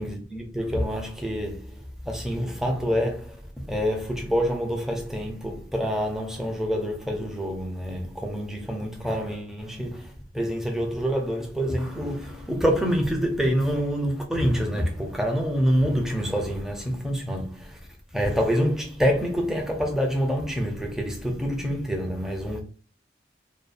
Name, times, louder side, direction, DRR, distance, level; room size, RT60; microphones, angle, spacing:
voice 1, 0.0-17.8 18.1-22.6, equal, 5° right, 0.4 m, -27 dB
2.7 x 2.2 x 2.4 m
head